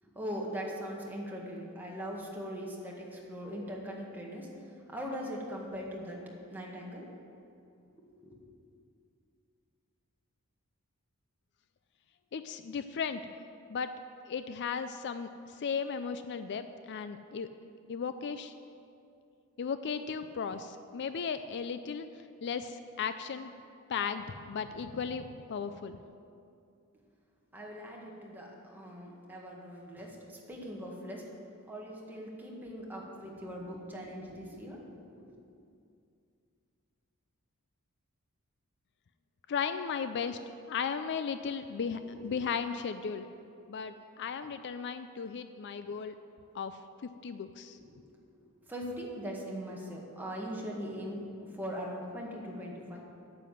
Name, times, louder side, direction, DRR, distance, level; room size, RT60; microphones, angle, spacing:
voice 1, 0.0-6.2 6.5-7.1 8.0-8.4 27.5-31.3 31.7-34.8 35.2-35.4 42.0-42.3 42.7-42.8 47.7-53.0, equal, 10° right, -3 dB, 1.9 m, -41 dB
voice 2, 12.3-13.2 13.7-13.9 14.3-17.5 17.9-18.5 19.6-23.5 23.9-26.0 39.5-40.4 40.7-43.3 43.7-46.2 46.5-47.8, left 6 dB, 50° left, 10 dB, 0.4 m, -36 dB
9.2 x 7.7 x 9.1 m, 2.5 s
head